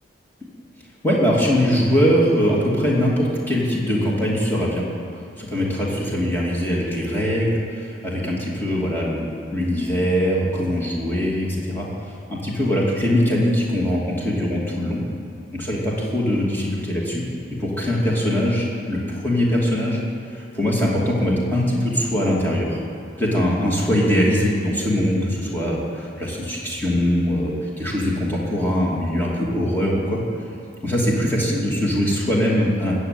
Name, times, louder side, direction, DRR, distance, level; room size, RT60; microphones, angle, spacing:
voice 1, 1.0-4.8 5.4-11.9 12.3-15.0 15.5-17.2 17.6-20.0 20.3-22.8 23.2-30.2 30.8-33.0, equal, 10° left, -5 dB, 2.5 m, -22 dB
14.5 x 7.4 x 9.1 m, 2.6 s
head